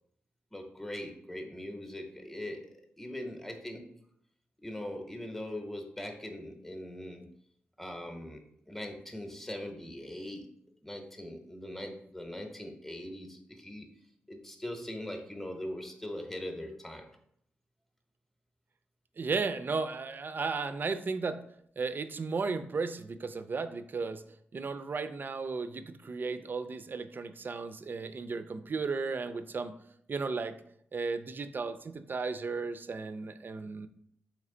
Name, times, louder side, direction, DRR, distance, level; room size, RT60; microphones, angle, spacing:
voice 1, 0.5-3.9 4.6-7.3 7.8-10.5 10.8-13.9 14.3-17.1, left 1 dB, 5° left, 4 dB, 0.8 m, -41 dB
voice 2, 19.2-21.4 21.8-24.2 24.5-29.7 30.1-30.6 30.9-33.9, right 4 dB, 45° right, 11 dB, 0.3 m, -34 dB
3.2 x 3.1 x 3.7 m, 0.69 s
supercardioid pair, 45°, 5 cm